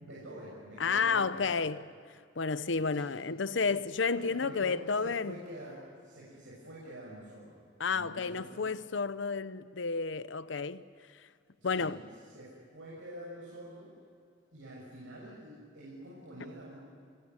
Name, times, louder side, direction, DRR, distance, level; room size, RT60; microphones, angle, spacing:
voice 1, 0.0-1.7 2.9-3.1 3.6-3.8 4.1-8.8 11.6-13.9 14.5-16.7, right 1 dB, 85° right, 7.0 m, -47 dB
voice 2, 0.8-1.8 2.4-5.3 7.8-10.8 11.6-12.0, left 5 dB, 75° left, 0.7 m, -31 dB
26.0 x 21.5 x 9.7 m
head